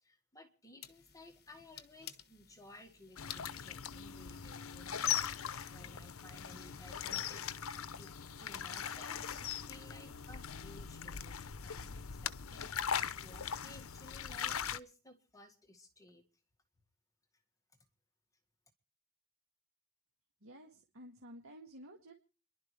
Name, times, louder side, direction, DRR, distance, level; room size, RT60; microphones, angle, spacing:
voice 1, 0.0-7.5 8.0-8.1 8.4-16.2, left 1 dB, 15° left, 5 dB, 1.8 m, -58 dB
sound 1, 0.8-8.1, left 9 dB, 50° left, 1.3 m, -54 dB
sound 2, 3.2-14.8, left 8 dB, 75° left, 0.8 m, -40 dB
voice 2, 20.4-22.1, equal, 65° right, 1 dB, 2.0 m, -53 dB
29.5 x 11.5 x 3.3 m, 0.37 s
head